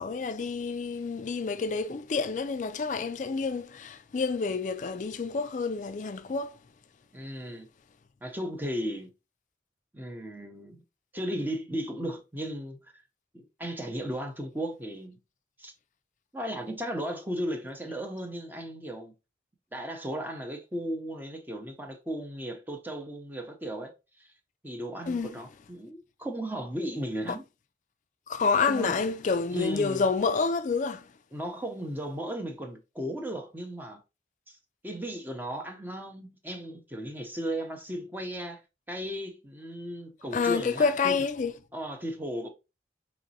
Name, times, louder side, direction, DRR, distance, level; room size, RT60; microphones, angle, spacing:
voice 1, 0.0-6.6 25.1-25.4 27.3-27.4 28.3-31.1 40.3-41.5, left 4 dB, 45° left, 0.3 m, -28 dB
voice 2, 7.1-7.7 8.2-9.1 9.9-10.8 11.1-13.0 13.3-15.2 15.6-15.7 16.3-19.1 19.7-23.9 24.2-24.3 24.6-27.4 28.7-28.9 29.5-30.1 31.3-34.0 34.5-34.6 34.8-38.6 38.9-41.2 41.7-42.5, equal, 10° right, 0.6 m, -35 dB
5.1 x 3.0 x 2.7 m
head